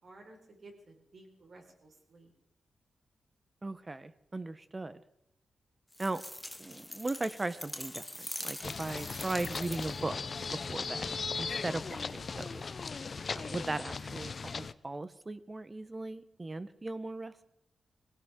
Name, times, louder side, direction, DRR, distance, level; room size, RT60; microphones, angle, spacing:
voice 1, 0.0-2.3, right 2 dB, 55° right, 1 dB, 4.9 m, -55 dB
voice 2, 3.6-5.0 6.0-6.2 6.6-10.2 10.5-12.7 13.3-17.4, right 2 dB, 25° right, 13 dB, 1.0 m, -38 dB
sound 1, 5.9-10.1, left 1 dB, 5° left, 0.7 m, -43 dB
sound 2, 8.6-14.7, left 4 dB, 45° left, 0.6 m, -38 dB
23.0 x 16.5 x 3.8 m, 0.79 s
wide cardioid pair, 110°, 0 cm